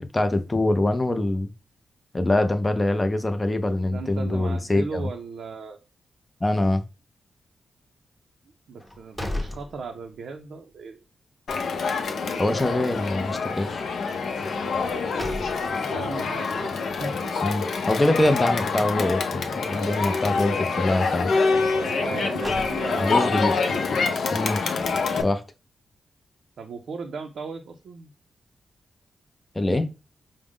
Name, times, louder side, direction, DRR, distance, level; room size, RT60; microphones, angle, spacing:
voice 1, 0.0-1.5 2.1-5.0 6.4-6.8 12.4-13.8 17.4-21.3 23.0-23.5 24.3-24.6 25.2-25.4 29.6-29.9, left 1 dB, 20° left, 8 dB, 0.4 m, -24 dB
voice 2, 3.8-5.8 8.7-11.0 15.9-17.1 21.8-23.4 26.6-28.1, right 4 dB, 85° right, 3 dB, 0.5 m, -37 dB
sound 1, 8.8-10.4 10.8-10.9 14.7-16.0 22.0-23.3, left 1 dB, 5° left, 0.9 m, -36 dB
Crowd, 11.5-25.2, left 4 dB, 75° left, 0.5 m, -26 dB
4.8 x 2.0 x 3.6 m, 0.31 s
wide cardioid pair, 100°, 0 cm